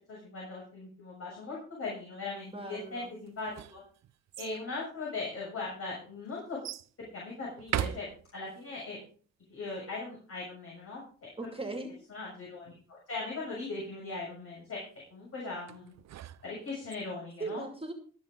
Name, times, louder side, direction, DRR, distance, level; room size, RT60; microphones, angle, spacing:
voice 1, 0.1-3.8 4.4-6.6 7.0-8.1 8.3-9.0 9.5-11.3 12.1-14.8 15.1-15.9 16.4-17.6, left 3 dB, 50° left, -4 dB, 7.0 m, -39 dB
voice 2, 2.5-3.1 11.4-11.9 17.4-17.9, right 3 dB, 20° right, 5 dB, 2.5 m, -38 dB
sound 1, 3.3-4.6 5.4-5.5 6.6-6.9 7.6-8.6 15.7-17.0, right 11 dB, 60° right, 0.7 m, -38 dB
22.5 x 7.6 x 3.8 m, 0.43 s
cardioid pair, 90°, 30 cm